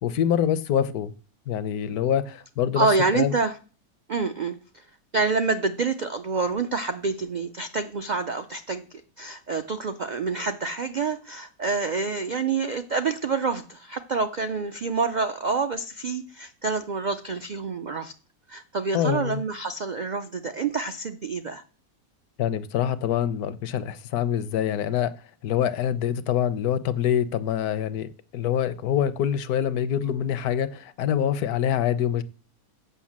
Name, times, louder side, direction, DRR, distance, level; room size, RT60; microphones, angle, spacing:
voice 1, 0.0-1.1 1.5-2.9 3.1-3.3 18.9-19.4 22.4-25.1 25.4-32.2, left 9 dB, 80° left, 1.2 m, -25 dB
voice 2, 2.8-3.6 4.1-4.9 5.1-18.1 18.5-21.6, right 4 dB, 80° right, 0.4 m, -27 dB
8.2 x 5.7 x 7.3 m
omnidirectional pair, 1.6 m